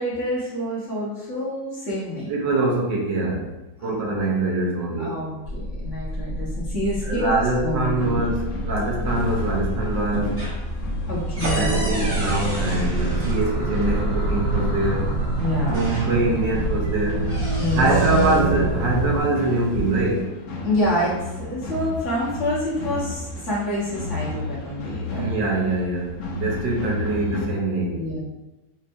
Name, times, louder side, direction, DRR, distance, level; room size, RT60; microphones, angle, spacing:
voice 1, 0.0-2.4 3.8-3.9 5.0-8.2 11.1-11.7 15.4-15.8 17.6-17.9 20.6-25.3 27.9-28.2, equal, 45° left, -8 dB, 1.4 m, -27 dB
voice 2, 2.3-3.5 3.8-5.2 7.1-10.4 11.5-15.1 15.7-17.2 17.7-20.3 25.1-28.0, right 2 dB, 75° right, -2 dB, 1.5 m, -24 dB
sound 1, 5.4-19.2, right 2 dB, 55° right, 0.8 m, -26 dB
sound 2, 8.0-27.5, left 3 dB, 65° left, 1.0 m, -33 dB
sound 3, 9.0-9.6 9.9-13.9 15.0-15.1 15.5-16.5 16.8-18.5 19.4-20.2, right 1 dB, 35° right, 1.6 m, -34 dB
5.6 x 3.2 x 2.6 m, 1.0 s
omnidirectional pair, 2.0 m